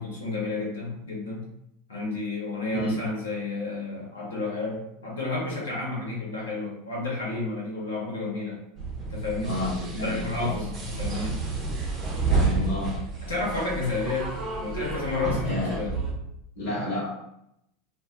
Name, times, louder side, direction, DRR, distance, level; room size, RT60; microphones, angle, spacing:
voice 1, 0.0-1.4 1.9-8.6 9.1-9.6 9.9-11.4 13.2-15.9, left 3 dB, 75° left, -3 dB, 1.0 m, -31 dB
sound 1, 8.8-16.1, right 3 dB, 35° right, 0.7 m, -30 dB
voice 2, 9.4-10.5 12.2-12.9 15.4-15.7 16.6-17.1, left 1 dB, 55° left, -7 dB, 1.1 m, -30 dB
2.2 x 2.1 x 3.6 m, 0.78 s
figure-of-eight pair, 80°, 0 cm